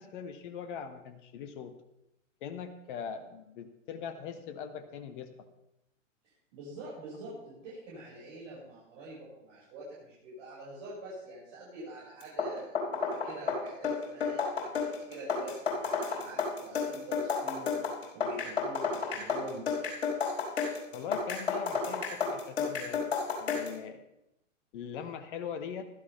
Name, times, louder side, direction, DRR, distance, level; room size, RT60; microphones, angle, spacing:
voice 1, 0.0-1.8 2.4-5.3 20.9-23.0 23.4-24.0 24.7-25.8, left 7 dB, 40° left, 8 dB, 1.1 m, -41 dB
voice 2, 6.2-17.8 18.1-19.7 20.6-20.7, right 1 dB, 45° right, -9 dB, 6.3 m, -45 dB
sound 1, 12.2-23.8, left 5 dB, 60° left, 4.7 m, -32 dB
16.0 x 13.0 x 3.5 m, 0.85 s
figure-of-eight pair, 110°, 38 cm